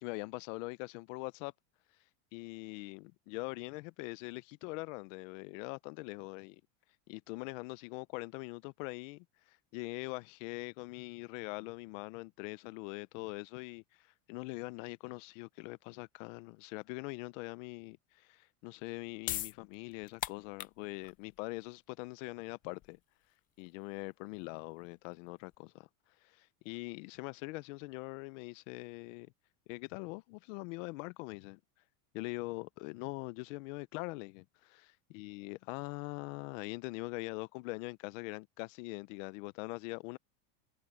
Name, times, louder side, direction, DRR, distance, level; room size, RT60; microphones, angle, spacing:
voice 1, 0.0-1.5 2.3-6.6 7.1-13.8 14.3-23.0 23.6-25.9 26.2-29.3 29.7-31.6 32.1-40.2, left 24 dB, 65° left, 0.7 m, -43 dB
sound 1, 18.8-25.6, left 14 dB, 20° left, 0.4 m, -44 dB
supercardioid pair, 160°, 42 cm